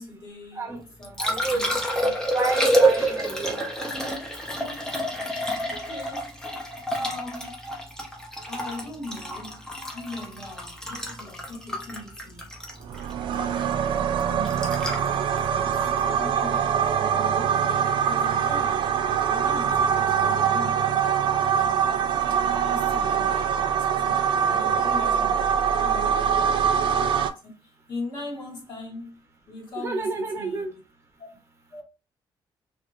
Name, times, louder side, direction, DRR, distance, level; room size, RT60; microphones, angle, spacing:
voice 1, 0.0-2.3 5.3-6.4 6.9-7.7 8.5-12.6 13.2-14.8 15.7-17.7 18.1-21.7 22.3-30.7 31.2-31.3 31.7-31.8, left 2 dB, 60° left, 1.4 m, -40 dB
Liquid, 0.8-16.9 19.7-19.8, right 1 dB, 5° left, 0.7 m, -28 dB
voice 2, 1.2-1.7 2.3-3.6 9.9-10.1 10.9-11.0 29.8-30.7, right 3 dB, 30° right, 0.8 m, -30 dB
sound 1, 12.9-27.3, right 8 dB, 65° right, 0.4 m, -23 dB
2.4 x 2.4 x 3.2 m
cardioid pair, 140°, 9 cm